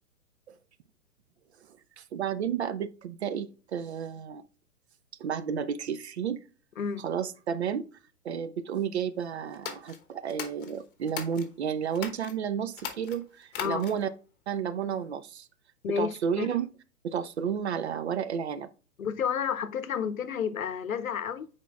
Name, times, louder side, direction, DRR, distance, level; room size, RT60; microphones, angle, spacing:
voice 1, 2.0-4.4 5.2-6.4 7.0-7.9 8.2-14.1 14.5-15.5 16.0-16.7 17.0-18.7, right 8 dB, 45° right, 0.6 m, -32 dB
voice 2, 6.8-7.1 13.6-13.9 15.8-16.5 19.0-21.5, left 7 dB, 65° left, 0.8 m, -31 dB
sound 1, 9.5-11.5 11.9-12.3 12.7-14.1, left 8 dB, 35° left, 1.1 m, -39 dB
9.0 x 4.4 x 2.3 m
figure-of-eight pair, 120°, 46 cm